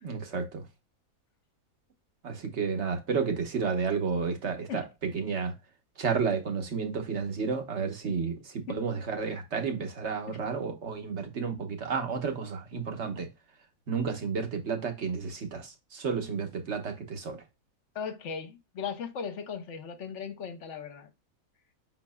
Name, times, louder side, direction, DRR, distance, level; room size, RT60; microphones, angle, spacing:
voice 1, 0.0-0.7 2.2-5.5 6.0-13.3 13.9-17.4, right 5 dB, 55° right, 1.3 m, -31 dB
voice 2, 17.9-21.1, left 6 dB, 60° left, 1.0 m, -37 dB
5.8 x 4.2 x 2.2 m
omnidirectional pair, 1.5 m